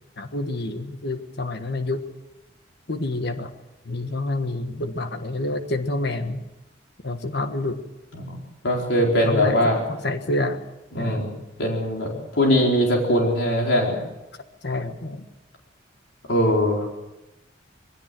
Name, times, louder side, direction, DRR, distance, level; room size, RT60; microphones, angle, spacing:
voice 1, 0.2-2.0 2.9-3.5 3.8-6.4 7.0-7.8 9.2-10.6 11.0-11.3 14.6-15.3, left 2 dB, 60° left, 8 dB, 1.4 m, -28 dB
voice 2, 8.6-9.8 10.9-11.3 11.6-14.0 16.3-16.9, equal, 75° left, -1 dB, 4.4 m, -21 dB
22.0 x 16.5 x 7.8 m, 1.0 s
head